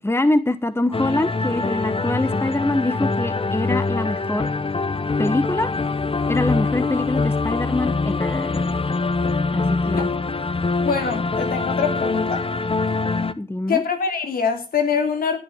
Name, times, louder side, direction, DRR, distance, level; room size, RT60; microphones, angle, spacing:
voice 1, 0.0-4.5 5.2-5.7 6.3-8.6 9.5-10.1 13.4-13.8, left 2 dB, 15° left, 1.3 m, -24 dB
sound 1, 0.9-13.3, left 3 dB, 35° left, 1.2 m, -24 dB
voice 2, 10.8-12.5 13.7-15.4, left 6 dB, 75° left, 3.3 m, -24 dB
16.5 x 7.7 x 7.4 m
cardioid pair, 50°, 15 cm